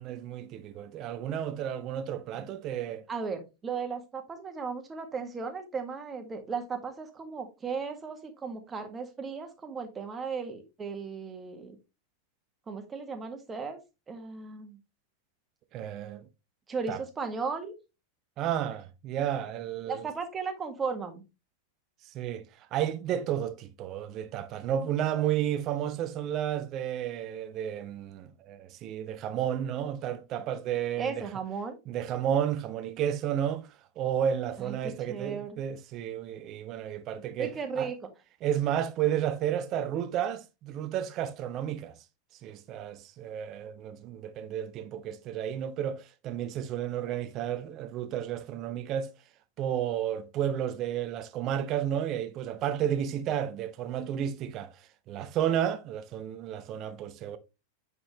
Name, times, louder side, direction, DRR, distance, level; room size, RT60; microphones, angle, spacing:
voice 1, 0.0-3.0 15.7-16.2 16.9-17.0 18.4-20.1 22.1-31.3 31.9-33.7 34.0-37.9 38.4-42.0 42.4-49.1 49.6-54.7 55.1-57.4, right 10 dB, 35° right, 0.7 m, -32 dB
voice 2, 3.1-11.8 12.7-13.8 14.1-14.8 16.7-17.7 19.9-21.2 31.0-31.8 34.6-35.6 37.4-38.1, right 5 dB, 20° right, 1.7 m, -36 dB
8.7 x 5.4 x 3.1 m
figure-of-eight pair, 90°, 0 cm